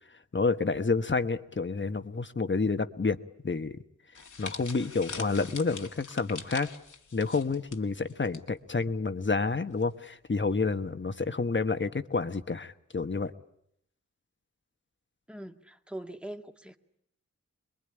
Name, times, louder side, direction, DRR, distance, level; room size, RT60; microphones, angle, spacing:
voice 1, 0.3-3.2 3.4-3.7 4.4-6.7 7.1-13.3, left 4 dB, 40° left, 10 dB, 1.3 m, -29 dB
sound 1, 4.1-8.4 8.7-8.9 9.8-10.1, left 4 dB, 80° left, 2.2 m, -44 dB
voice 2, 15.3-16.8, right 1 dB, 5° right, 5 dB, 1.7 m, -42 dB
26.0 x 22.0 x 9.9 m, 0.76 s
wide cardioid pair, 85°, 30 cm